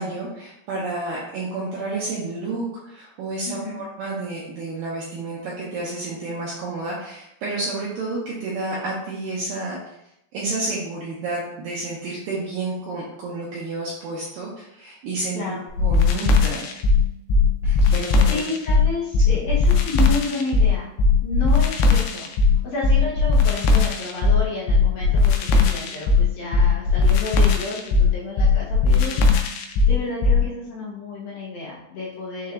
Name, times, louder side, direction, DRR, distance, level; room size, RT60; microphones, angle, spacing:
voice 1, 0.0-9.8 10.3-15.4 15.8-16.6 17.6-18.4 19.3-19.4, right 3 dB, 80° right, -5 dB, 2.0 m, -30 dB
voice 2, 3.5-3.8 15.3-15.6 17.8-20.9 21.2-22.3 22.6-29.2 29.9-32.5, left 2 dB, 75° left, -5 dB, 2.3 m, -31 dB
sound 1, 15.8-30.5, left 4 dB, 90° left, 2.8 m, -18 dB
6.6 x 3.2 x 2.4 m, 0.82 s
omnidirectional pair, 4.9 m